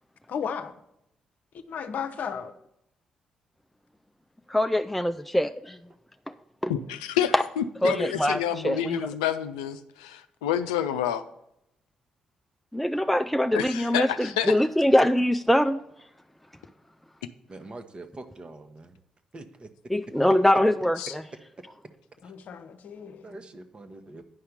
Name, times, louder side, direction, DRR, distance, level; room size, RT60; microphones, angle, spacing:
voice 1, 0.3-0.7 1.7-2.5 22.2-23.4, left 7 dB, 60° left, 0.8 m, -34 dB
voice 2, 4.5-5.8 6.6-6.7 7.3-7.4 7.8-9.0 12.7-15.8 19.9-21.3, left 1 dB, 5° left, 0.4 m, -23 dB
voice 3, 6.7-11.2 13.5-14.5 21.0-21.1, left 10 dB, 80° left, 0.4 m, -29 dB
voice 4, 17.5-18.9 19.3-19.7 23.2-24.2, right 2 dB, 35° right, 1.1 m, -43 dB
9.5 x 5.7 x 6.6 m
figure-of-eight pair, 40°, 3 cm